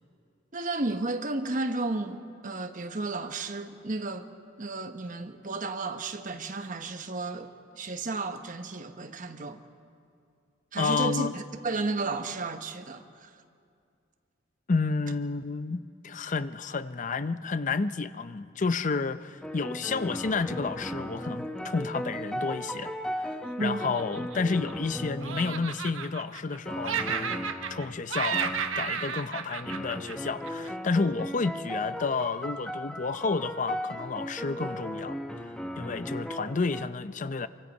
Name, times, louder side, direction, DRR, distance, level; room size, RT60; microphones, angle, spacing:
voice 1, 0.5-4.3 4.6-9.6 10.7-13.3 23.6-23.8, right 3 dB, 40° right, 1.1 m, -33 dB
voice 2, 10.8-11.4 14.7-23.3 23.6-35.5 35.8-37.5, left 4 dB, 40° left, 0.6 m, -31 dB
sound 1, 19.4-25.9 26.6-28.0 28.3-29.0 29.6-36.9, equal, 5° left, 0.9 m, -37 dB
Laughter, 23.6-24.9 25.2-26.6 26.8-27.8 28.1-30.7, right 7 dB, 90° right, 1.0 m, -33 dB
25.5 x 24.5 x 5.4 m
head